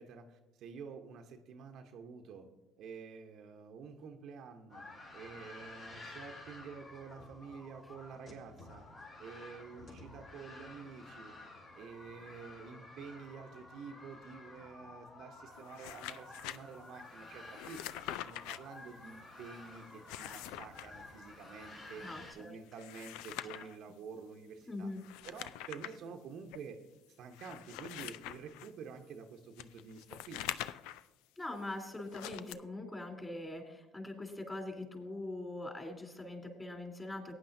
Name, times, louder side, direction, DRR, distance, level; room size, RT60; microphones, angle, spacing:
voice 1, 0.0-2.5 2.8-4.9 5.1-8.9 9.2-11.4 11.7-22.0 22.3-24.9 25.2-26.8 27.2-30.4, right 5 dB, 60° right, 4 dB, 1.0 m, -49 dB
sound 1, 4.7-22.3, left 2 dB, 50° left, 3.9 m, -52 dB
sound 2, 15.6-16.6 17.5-18.6 19.9-20.9 22.7-23.8 25.0-26.0 26.5-26.6 27.3-28.7 29.6-31.1 32.1-32.5, left 13 dB, 75° left, 0.4 m, -44 dB
voice 2, 22.0-22.5 23.5-23.6 24.7-25.0 31.4-37.3, left 2 dB, 20° left, 1 dB, 3.4 m, -42 dB
18.0 x 9.5 x 2.7 m, 1.1 s
hypercardioid pair, 65°, 0 cm